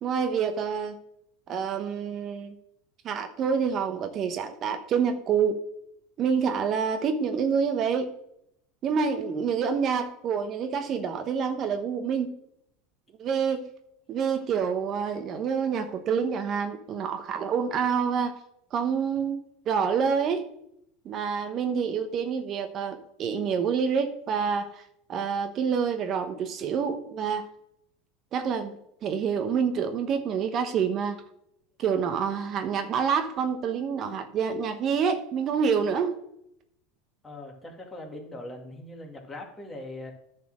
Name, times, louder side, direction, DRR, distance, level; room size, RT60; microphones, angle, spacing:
voice 1, 0.0-1.0 1.5-2.5 3.0-5.6 6.2-8.1 8.8-12.3 13.2-13.6 14.1-18.3 18.7-20.4 21.0-24.8 25.1-27.5 28.3-31.2 31.8-36.1, right 6 dB, 45° right, 8 dB, 0.9 m, -27 dB
voice 2, 37.2-40.1, left 1 dB, 20° left, 1 dB, 2.4 m, -41 dB
10.0 x 4.3 x 6.3 m, 0.76 s
hypercardioid pair, 95°, 0 cm